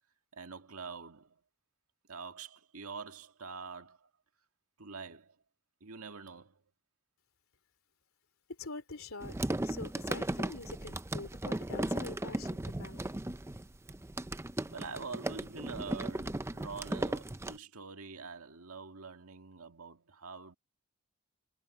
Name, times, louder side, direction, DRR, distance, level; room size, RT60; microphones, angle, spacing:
voice 1, 0.3-1.4 2.1-4.1 4.8-5.4 5.8-6.6 14.7-20.6, right 5 dB, 75° right, 1.9 m, -45 dB
voice 2, 8.6-9.4 9.6-13.0, left 3 dB, 65° left, 3.2 m, -45 dB
sound 1, 9.2-17.6, right 1 dB, 10° right, 0.5 m, -36 dB
head